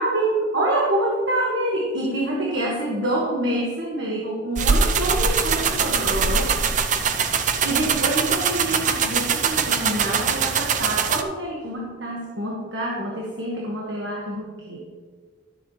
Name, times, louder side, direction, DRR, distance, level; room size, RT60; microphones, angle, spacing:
voice 1, 0.0-6.6 7.6-14.8, right 1 dB, 80° right, -3 dB, 1.5 m, -26 dB
sound 1, 4.6-11.2, right 6 dB, 40° right, 0.4 m, -22 dB
12.5 x 7.6 x 3.1 m, 1.5 s
head